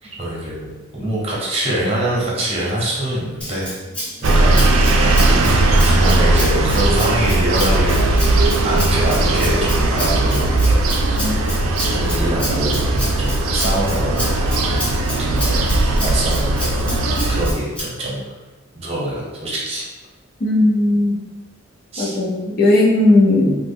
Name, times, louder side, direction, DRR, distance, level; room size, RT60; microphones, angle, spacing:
voice 1, 0.0-3.7 4.2-4.7 5.8-8.1 8.6-10.4 11.1-11.3 11.8-14.9 15.2-18.2 18.7-19.9 21.9-22.2, right 1 dB, 30° right, -5 dB, 0.8 m, -24 dB
Rattle (instrument), 3.4-17.8, equal, 5° left, 0.6 m, -30 dB
sound 1, 4.2-17.5, right 2 dB, 85° right, 0.4 m, -17 dB
voice 2, 20.4-21.2 22.0-23.6, left 2 dB, 45° left, -5 dB, 0.6 m, -16 dB
3.1 x 2.2 x 3.4 m, 1.2 s
head